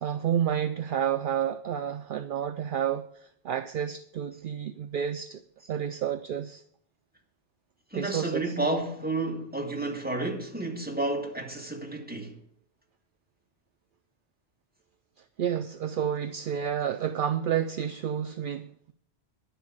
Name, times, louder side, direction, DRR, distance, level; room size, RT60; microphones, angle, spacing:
voice 1, 0.0-3.1 3.4-5.4 5.7-6.6 7.9-8.4 15.4-18.9, right 9 dB, 60° right, 0.7 m, -30 dB
voice 2, 7.9-12.4, right 2 dB, 10° right, 2.1 m, -31 dB
10.5 x 5.9 x 8.6 m
omnidirectional pair, 1.1 m